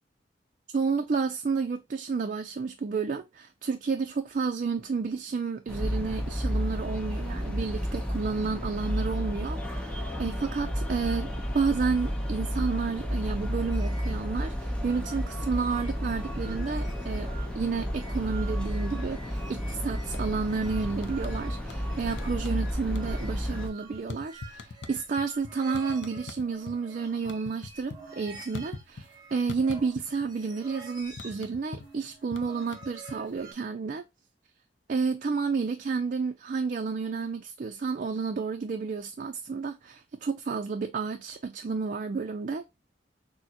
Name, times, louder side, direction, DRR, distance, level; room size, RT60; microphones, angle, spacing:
voice 1, 0.7-34.0 34.9-42.7, right 5 dB, 45° right, 0.4 m, -31 dB
sound 1, 5.7-23.7, equal, 5° left, 0.9 m, -32 dB
sound 2, 13.7-33.5, right 3 dB, 20° right, 1.1 m, -49 dB
sound 3, 20.0-20.5 20.8-21.9 22.1-22.6 22.9-26.8 27.1-29.2 29.5-30.3 30.6-33.5, left 3 dB, 75° left, 0.6 m, -42 dB
6.2 x 2.1 x 2.9 m
head